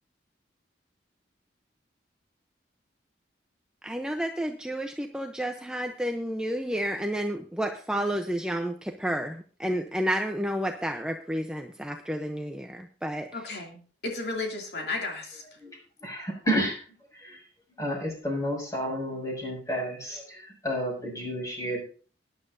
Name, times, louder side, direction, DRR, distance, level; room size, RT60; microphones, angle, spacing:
voice 1, 3.8-13.3, equal, 5° right, 4 dB, 0.7 m, -31 dB
voice 2, 13.3-15.4, left 3 dB, 60° left, 1 dB, 2.7 m, -34 dB
voice 3, 15.6-16.8 17.1-17.4 17.7-21.8, equal, 20° left, -1 dB, 6.3 m, -31 dB
19.0 x 11.0 x 2.7 m, 0.40 s
head